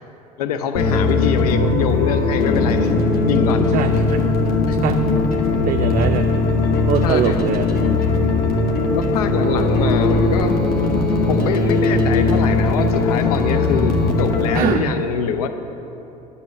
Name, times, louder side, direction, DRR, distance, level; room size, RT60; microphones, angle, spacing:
voice 1, 0.4-2.9 3.3-3.7 4.7-4.8 6.6-7.5 8.9-10.6 11.3-15.5, left 7 dB, 80° left, 8 dB, 0.7 m, -24 dB
sound 1, 0.7-14.6, left 3 dB, 50° left, 1.3 m, -19 dB
voice 2, 3.7-4.2 4.8-5.0 5.5-6.3 6.9-7.7 14.5-14.9, right 9 dB, 45° right, 6 dB, 0.5 m, -22 dB
Piano, 4.5-14.8, left 1 dB, 25° left, 0.7 m, -35 dB
9.7 x 7.0 x 6.5 m, 3.0 s
hypercardioid pair, 65°, 19 cm